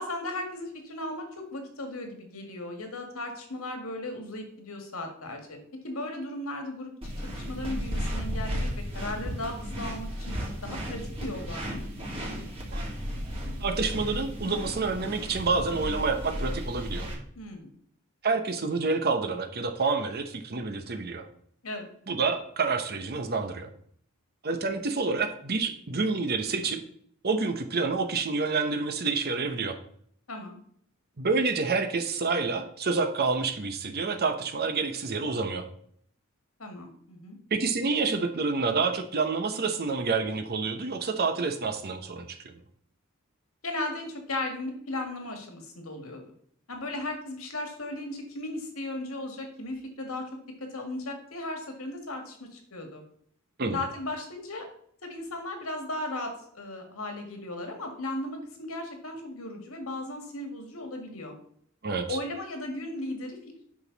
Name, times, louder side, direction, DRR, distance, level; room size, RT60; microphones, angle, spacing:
voice 1, 0.0-5.6 5.8-10.3 10.6-11.8 17.4-17.7 21.6-21.9 30.3-30.6 36.6-37.4 43.6-46.2 46.7-50.2 50.7-53.0 53.7-54.6 55.0-61.3 62.1-63.6, left 1 dB, 85° left, 4 dB, 2.0 m, -36 dB
sound 1, 7.0-17.1, equal, 25° right, 2.3 m, -34 dB
voice 2, 13.6-17.1 18.2-21.3 22.1-23.7 24.4-26.8 27.2-29.8 31.2-35.6 37.5-42.5 53.6-53.8 61.8-62.2, right 4 dB, 50° right, 7 dB, 0.9 m, -28 dB
8.7 x 6.2 x 4.0 m, 0.63 s
head